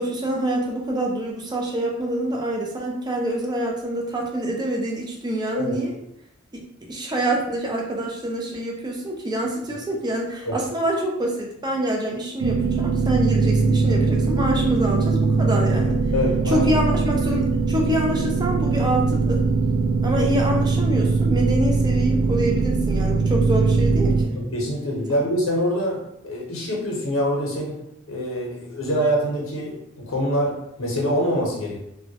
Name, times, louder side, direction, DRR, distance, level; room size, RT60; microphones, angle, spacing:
voice 1, 0.0-6.0 6.9-16.0 16.5-19.4 20.0-24.3, right 1 dB, 20° right, 0 dB, 0.4 m, -26 dB
sound 1, 12.4-24.3, right 4 dB, 85° right, 0.4 m, -21 dB
voice 2, 16.1-16.7 24.3-27.8 28.1-31.8, equal, 80° left, -2 dB, 0.7 m, -25 dB
2.2 x 2.1 x 2.7 m, 0.80 s
head